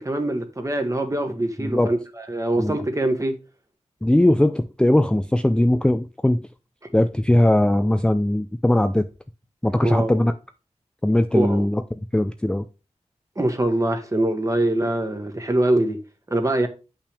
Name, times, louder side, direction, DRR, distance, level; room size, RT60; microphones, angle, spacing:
voice 1, 0.0-2.0 2.3-3.3 9.8-10.3 11.3-11.7 13.4-16.0 16.3-16.7, right 1 dB, 25° right, 1.4 m, -23 dB
voice 2, 1.6-1.9 2.6-2.8 4.0-6.5 6.9-9.1 9.6-10.3 11.0-11.8 12.1-12.7, left 1 dB, 5° left, 0.4 m, -19 dB
8.7 x 5.7 x 3.4 m
wide cardioid pair, 95°, 12 cm